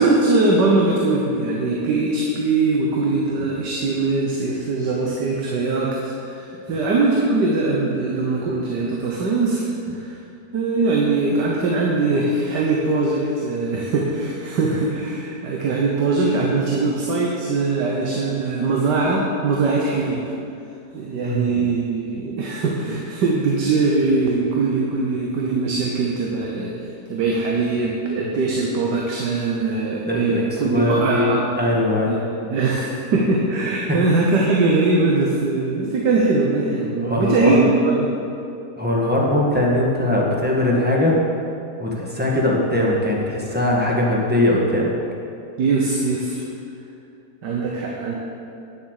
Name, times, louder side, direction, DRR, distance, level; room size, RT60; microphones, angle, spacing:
voice 1, 0.0-10.2 10.5-20.2 20.9-26.7 27.1-31.5 32.1-32.2 32.5-38.1 45.6-46.4 47.4-48.1, right 3 dB, 85° right, -2 dB, 1.7 m, -21 dB
voice 2, 21.2-21.5 30.1-32.2 37.0-37.7 38.7-41.3 41.8-44.9, left 1 dB, 5° right, -3 dB, 1.5 m, -20 dB
9.9 x 7.3 x 6.5 m, 2.7 s
omnidirectional pair, 1.8 m